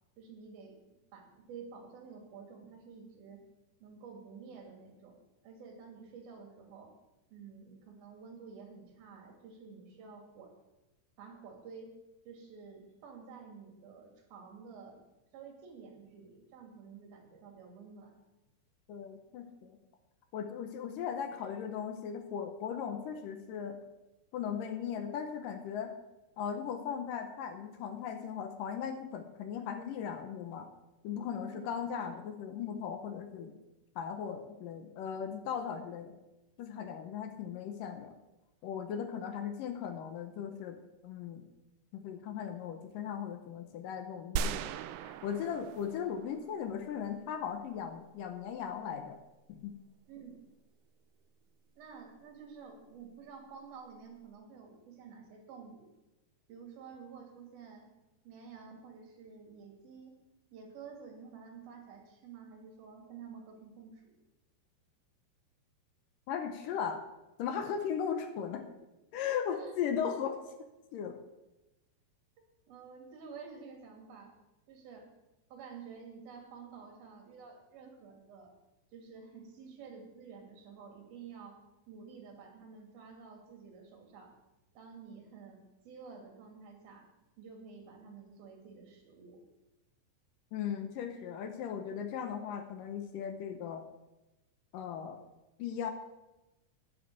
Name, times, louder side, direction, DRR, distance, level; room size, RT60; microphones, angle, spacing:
voice 1, 0.2-3.4 3.8-5.2 5.4-7.0 7.3-10.5 11.2-12.0 12.3-15.0 15.3-18.2 31.4-31.7 50.1-50.5 51.8-55.9 56.5-57.9 58.2-60.1 60.5-64.1 69.5-69.7 72.7-74.3 74.7-75.1 75.5-78.5 78.9-81.6 81.9-84.3 84.8-87.1 87.4-89.4, right 5 dB, 65° right, 2 dB, 4.2 m, -50 dB
voice 2, 18.9-19.8 20.3-23.8 24.3-25.9 26.4-30.7 31.0-33.6 34.0-36.2 36.6-38.2 38.6-41.5 41.9-49.2 49.5-49.8 66.3-67.0 67.4-68.6 69.1-70.5 70.9-71.2 90.5-93.8 94.7-95.2 95.6-95.9, left 7 dB, 75° left, 7 dB, 2.1 m, -38 dB
sound 1, 44.4-46.7, right 6 dB, 85° right, 2.5 m, -38 dB
10.0 x 7.9 x 8.1 m, 1.0 s
omnidirectional pair, 4.7 m